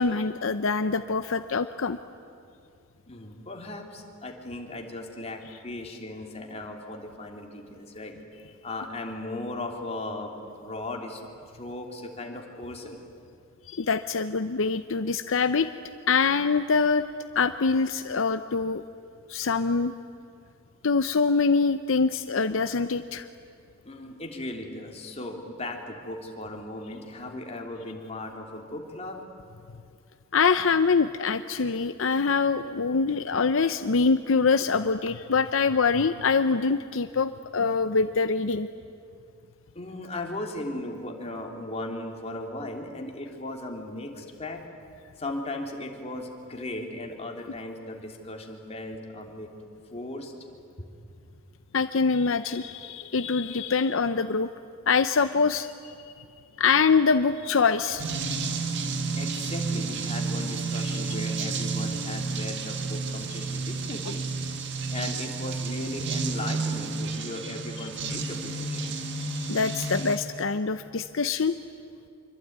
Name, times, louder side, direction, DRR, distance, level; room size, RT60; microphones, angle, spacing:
voice 1, 0.0-2.0 13.7-15.7 16.1-17.1 17.3-18.8 19.3-19.9 20.8-23.3 30.3-38.7 51.7-54.5 54.9-56.1 56.6-58.4 60.8-61.0 67.8-67.9 69.3-71.6, left 4 dB, 70° left, 10 dB, 0.7 m, -24 dB
voice 2, 3.1-8.1 8.6-11.2 11.5-13.0 23.8-29.2 39.7-44.6 45.2-49.5 49.9-50.3 59.1-64.2 64.9-69.1, left 2 dB, 30° left, 2 dB, 3.3 m, -37 dB
sound 1, 58.0-70.2, right 4 dB, 60° right, 1.9 m, -31 dB
26.0 x 24.0 x 9.5 m, 2.5 s
head